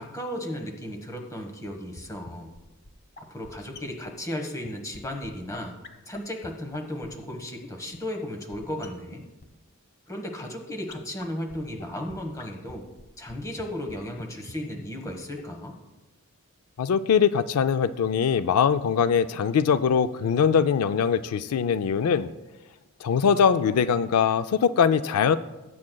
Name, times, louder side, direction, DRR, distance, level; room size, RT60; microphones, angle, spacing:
voice 1, 0.0-2.5 3.2-5.8 6.1-9.3 10.1-12.8 13.2-15.8, left 1 dB, 15° left, 3 dB, 1.3 m, -35 dB
sound 1, 1.7-1.8 2.0-2.1 2.3-2.4 2.6-2.7 2.9-3.0 3.2-3.3 3.4-3.5 3.7-3.8 4.1-4.2 4.3-4.4 4.6-4.7 4.9-5.0 5.2-5.3 5.5-5.6 5.8-5.9 6.1-6.2 6.4-6.5 6.7-7.1 7.3-7.4 7.6-7.7 7.9-8.0 8.2-8.3 8.5-8.6 8.8-8.9 9.1-9.2 9.4-9.5 10.9-11.0 11.2-11.3 11.5-11.6 11.8-11.9 12.1-12.2 12.4-12.5 12.7-12.8 13.0-13.3 13.6-13.7 13.9-14.0 14.2-14.3 14.5-14.6 14.8-14.9 15.1-15.2 15.4-15.5, left 3 dB, 45° left, 0.9 m, -43 dB
voice 2, 16.8-22.3 23.0-25.4, left 7 dB, 80° left, 12 dB, 0.4 m, -22 dB
19.0 x 8.5 x 2.3 m, 1.1 s
head